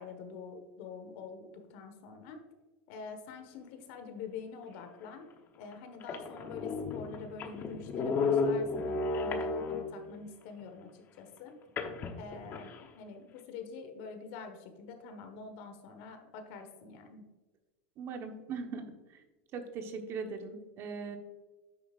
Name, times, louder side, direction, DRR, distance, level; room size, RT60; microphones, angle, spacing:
voice 1, 0.0-2.4 2.9-5.3 5.6-11.5 12.2-17.3, left 5 dB, 60° left, 6 dB, 1.3 m, -46 dB
sound 1, 5.1-5.2 5.7-5.8 6.0-10.1 11.8-12.8, left 4 dB, 35° left, 0.9 m, -33 dB
voice 2, 18.0-19.2 19.5-21.2, right 5 dB, 40° right, 5 dB, 1.1 m, -40 dB
9.5 x 7.0 x 2.5 m, 1.2 s
supercardioid pair, 140°, 6 cm